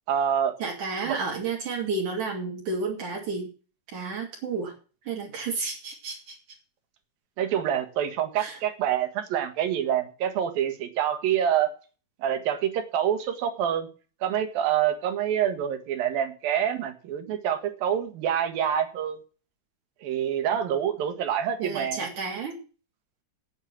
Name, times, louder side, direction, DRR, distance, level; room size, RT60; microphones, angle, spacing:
voice 1, 0.1-0.5 1.1-1.2 7.4-11.7 12.2-13.9 14.2-19.2 20.0-22.1, right 9 dB, 90° right, 8 dB, 3.3 m, -26 dB
voice 2, 0.6-3.5 3.9-4.7 5.1-6.4 8.4-8.6 21.6-22.6, right 4 dB, 65° right, -1 dB, 3.7 m, -31 dB
8.9 x 8.7 x 7.3 m, 0.36 s
omnidirectional pair, 4.0 m